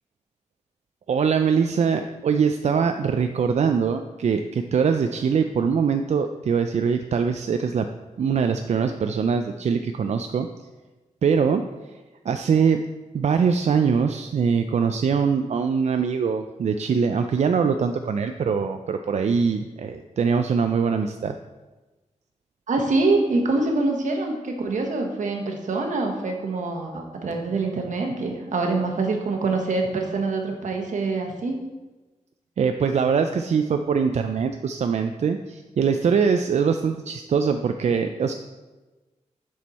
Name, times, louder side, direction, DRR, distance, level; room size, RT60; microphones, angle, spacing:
voice 1, 1.1-7.8 8.2-10.5 11.2-11.6 12.3-12.9 13.1-21.3 32.6-38.3, right 6 dB, 65° right, 7 dB, 0.4 m, -22 dB
voice 2, 22.7-31.6, right 3 dB, 85° right, 2 dB, 1.2 m, -25 dB
7.3 x 6.3 x 4.1 m, 1.2 s
wide cardioid pair, 130°, 12 cm